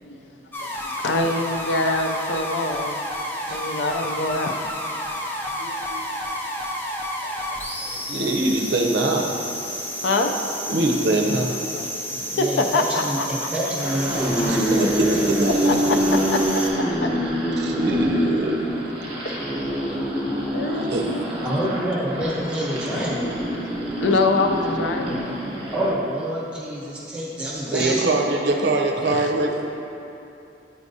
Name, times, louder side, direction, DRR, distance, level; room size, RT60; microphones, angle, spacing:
sound 1, 0.5-16.7, equal, 10° left, 0.4 m, -31 dB
voice 1, 1.0-3.0 3.5-4.7 5.5-6.0 7.2-7.6 10.0-10.5 11.7-13.5 15.5-16.2 17.0-17.1 19.2-20.0 20.5-21.4 24.0-25.4 29.1-29.3, left 2 dB, 80° left, 4 dB, 0.4 m, -25 dB
voice 2, 8.1-9.4 10.7-11.6 14.5-15.5 15.9-16.0 17.6-18.8 20.9-21.1 27.7-29.7, right 2 dB, 65° right, 2 dB, 0.5 m, -23 dB
voice 3, 12.3-15.2 21.4-23.4 25.7-28.3, right 1 dB, 5° right, -6 dB, 1.0 m, -28 dB
sound 2, 13.8-26.0, equal, 30° right, 1.0 m, -25 dB
8.0 x 4.8 x 2.7 m, 2.7 s
head